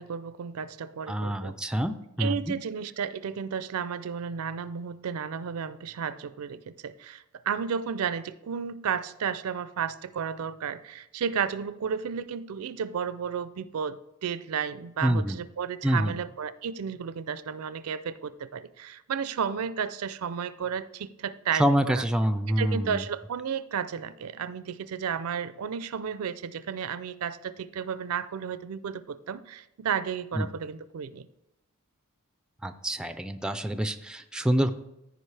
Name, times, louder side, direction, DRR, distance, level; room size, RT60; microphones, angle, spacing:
voice 1, 0.0-1.6 2.2-22.0 22.5-31.3, right 7 dB, 70° right, 0.4 m, -33 dB
voice 2, 1.1-2.6 15.0-15.4 15.8-16.1 21.6-23.0 30.4-30.5 32.6-34.7, equal, 5° right, 0.3 m, -26 dB
14.5 x 5.0 x 3.3 m
head